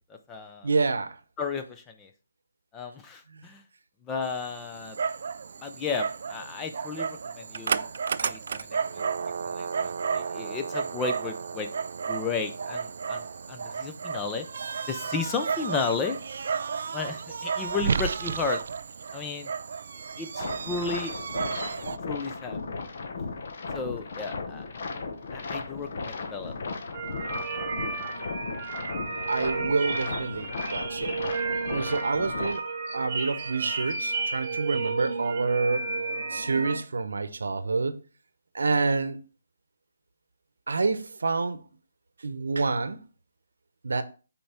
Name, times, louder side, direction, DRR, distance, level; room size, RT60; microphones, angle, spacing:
voice 1, 0.1-0.7 1.4-2.1 2.7-3.6 4.0-5.0 5.6-7.9 8.2-8.7 8.9-9.0 9.5-11.7 12.1-14.5 14.9-16.2 16.9-18.6 19.1-19.5 20.2-21.1 22.1-22.6 23.7-24.7 25.3-26.5, left 5 dB, 10° left, 0.5 m, -33 dB
voice 2, 0.6-1.1 29.3-31.2 31.7-32.6 32.9-35.8 36.3-38.0 38.5-39.2 40.7-41.6 42.2-43.0 43.8-44.0, right 4 dB, 90° right, 0.8 m, -27 dB
Dog, 4.2-22.0, right 6 dB, 55° right, 0.3 m, -32 dB
sound 1, 20.4-32.6, left 4 dB, 50° left, 0.9 m, -36 dB
sound 2, 26.9-36.8, right 4 dB, 25° right, 1.4 m, -32 dB
5.5 x 4.4 x 4.3 m
hypercardioid pair, 170°, 0 cm